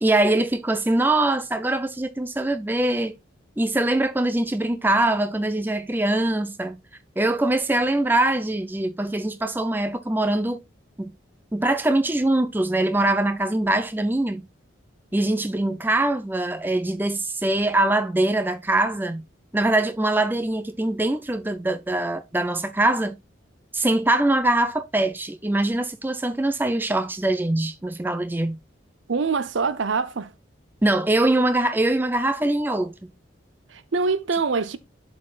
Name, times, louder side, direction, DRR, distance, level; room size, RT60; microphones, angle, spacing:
voice 1, 0.0-3.1 3.6-6.8 7.2-10.6 11.0-11.1 11.5-14.4 15.1-19.2 19.5-23.2 23.7-28.6 30.8-32.9, right 2 dB, 10° right, 0.5 m, -23 dB
voice 2, 29.1-30.3 33.7-34.8, right 4 dB, 70° right, 0.6 m, -24 dB
11.5 x 4.2 x 2.4 m
head